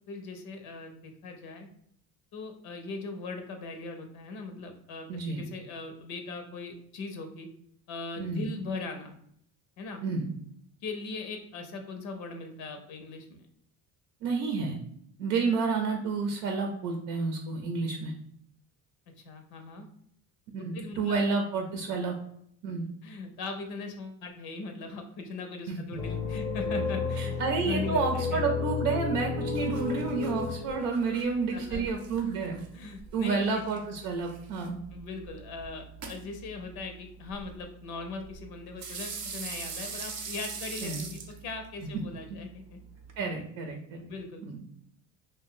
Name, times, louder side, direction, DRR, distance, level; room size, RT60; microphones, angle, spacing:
voice 1, 0.1-1.7 2.3-7.5 7.9-9.1 9.8-10.0 10.8-13.4 19.2-19.9 20.7-21.2 23.0-27.3 27.6-28.4 31.5-31.8 32.7-33.6 34.9-42.8 43.2-43.3 43.9-44.4, left 3 dB, 60° left, 5 dB, 0.7 m, -39 dB
voice 2, 5.1-5.5 8.2-8.5 10.0-10.3 14.2-14.8 15.2-18.1 20.5-22.1 22.6-22.9 25.7-25.8 27.2-32.6 33.1-34.8 40.8-41.1 43.2-44.0 44.4-44.6, right 4 dB, 80° right, 2 dB, 0.6 m, -30 dB
sound 1, 26.0-32.1, left 5 dB, 15° left, 0.5 m, -32 dB
sound 2, 29.1-43.2, right 5 dB, 40° right, 0.6 m, -44 dB
2.6 x 2.2 x 3.6 m, 0.68 s
supercardioid pair, 105°, 41 cm